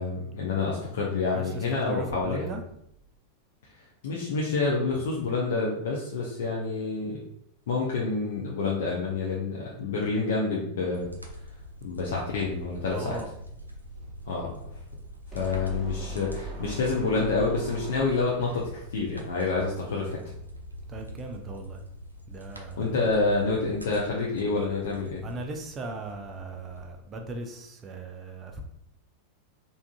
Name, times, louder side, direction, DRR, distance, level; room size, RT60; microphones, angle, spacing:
voice 1, 0.0-2.5 4.0-7.2 7.7-11.1 11.8-13.2 14.3-14.6 15.3-20.2 22.8-25.2, left 3 dB, 60° left, -4 dB, 0.6 m, -28 dB
voice 2, 1.3-2.6 12.9-13.3 20.9-21.8 22.3-22.9 25.2-28.6, right 2 dB, 25° right, 4 dB, 0.5 m, -38 dB
sound 1, 10.9-26.8, equal, 85° right, 0.4 m, -44 dB
sound 2, 15.3-18.6, equal, 5° right, 1.1 m, -39 dB
3.5 x 2.6 x 2.3 m, 0.74 s
figure-of-eight pair, 90°, 0 cm